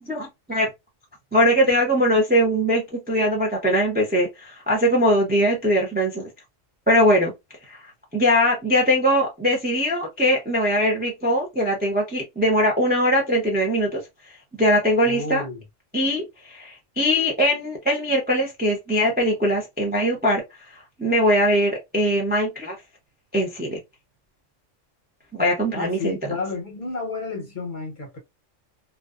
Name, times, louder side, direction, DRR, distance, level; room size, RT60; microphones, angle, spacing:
voice 1, 0.0-0.7 1.3-6.3 6.9-7.3 7.7-7.8 8.1-14.0 14.6-15.4 15.9-20.4 21.0-22.7 23.3-23.8 25.3-26.3, equal, 15° right, 0.4 m, -21 dB
voice 2, 15.0-15.6 25.7-28.2, left 3 dB, 50° left, 0.7 m, -31 dB
2.5 x 2.2 x 2.2 m
omnidirectional pair, 1.3 m